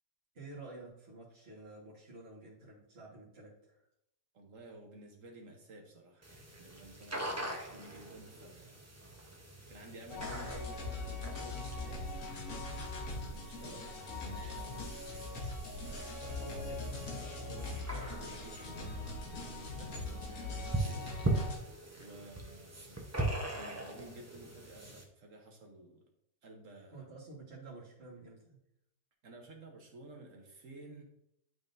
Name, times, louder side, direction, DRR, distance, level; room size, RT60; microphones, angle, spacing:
voice 1, 0.3-3.8 26.9-28.6, right 3 dB, 40° right, -8 dB, 1.8 m, -50 dB
voice 2, 4.3-8.8 9.7-12.1 12.8-15.1 16.0-21.1 22.0-23.1 23.5-26.0 26.4-27.1 29.2-31.0, right 2 dB, 60° right, 1 dB, 1.3 m, -53 dB
sound 1, 6.2-25.0, right 2 dB, 15° right, 0.6 m, -42 dB
sound 2, 10.1-21.6, left 2 dB, 60° left, 1.5 m, -41 dB
11.0 x 3.7 x 2.6 m, 0.77 s
omnidirectional pair, 1.6 m